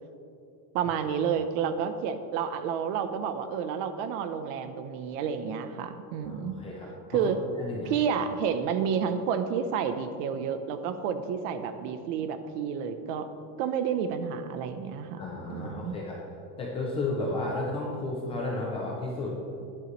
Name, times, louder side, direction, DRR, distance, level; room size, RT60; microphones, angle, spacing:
voice 1, 0.7-6.6 7.1-7.4 7.8-13.3 13.6-15.2 15.5-16.0, right 7 dB, 50° right, 9 dB, 0.8 m, -30 dB
voice 2, 6.2-7.3 7.6-7.9 15.2-16.2 16.6-19.3, left 2 dB, 15° left, -3 dB, 0.4 m, -33 dB
16.5 x 11.0 x 3.1 m, 2.7 s
cardioid pair, 175°, 50 cm